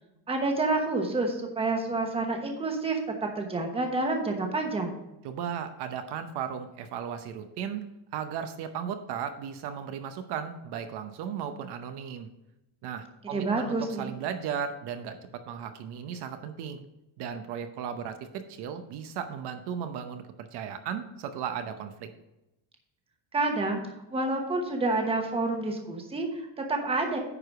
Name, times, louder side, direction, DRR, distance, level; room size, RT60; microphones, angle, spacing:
voice 1, 0.3-5.0 13.2-14.1 23.3-23.8 24.1-27.2, right 2 dB, 15° right, 3 dB, 1.1 m, -28 dB
voice 2, 5.2-7.8 8.1-12.3 12.8-16.8 17.2-22.1, right 8 dB, 65° right, 7 dB, 0.9 m, -36 dB
9.9 x 4.8 x 4.8 m, 0.91 s
cardioid pair, 170°, 44 cm